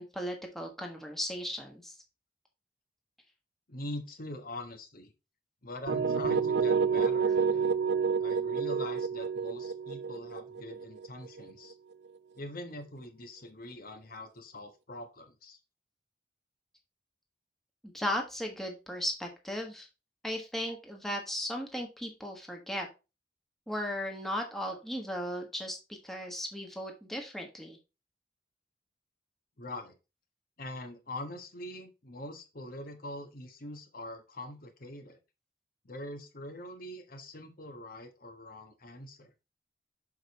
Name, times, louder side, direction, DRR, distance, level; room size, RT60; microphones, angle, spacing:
voice 1, 0.0-2.0 17.8-19.9 20.2-22.9 23.7-25.8 26.0-27.8, equal, ahead, 1 dB, 1.3 m, -36 dB
voice 2, 3.7-5.1 5.6-7.6 8.2-11.7 12.4-15.6 29.6-29.9 30.6-35.2 35.8-39.3, left 1 dB, 55° left, 5 dB, 1.2 m, -43 dB
sound 1, 5.9-11.7, right 6 dB, 80° right, 0.6 m, -29 dB
6.5 x 4.8 x 4.1 m, 0.29 s
head